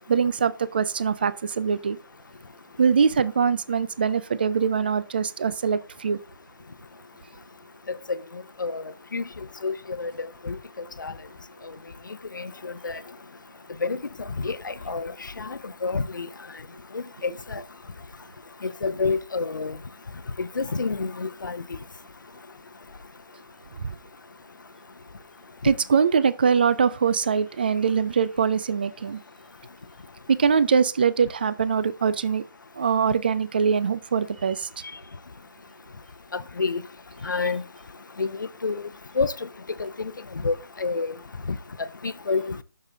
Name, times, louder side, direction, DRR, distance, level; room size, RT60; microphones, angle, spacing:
voice 1, 0.1-2.0 2.8-6.2 23.8-24.0 25.6-29.2 30.3-32.4 32.7-34.7, right 6 dB, 30° right, 0.4 m, -23 dB
voice 2, 9.6-10.6 11.0-11.1 12.3-13.0 13.8-14.0 14.4-15.1 15.4-16.3 16.9-17.6 18.6-19.8 20.4-21.6 36.3-36.8 37.2-37.6 38.2-38.9 39.2-39.3 39.8-40.1 40.4-41.1 41.5-42.5, left 4 dB, 70° left, 0.7 m, -28 dB
7.2 x 6.7 x 3.8 m
figure-of-eight pair, 160°, 11 cm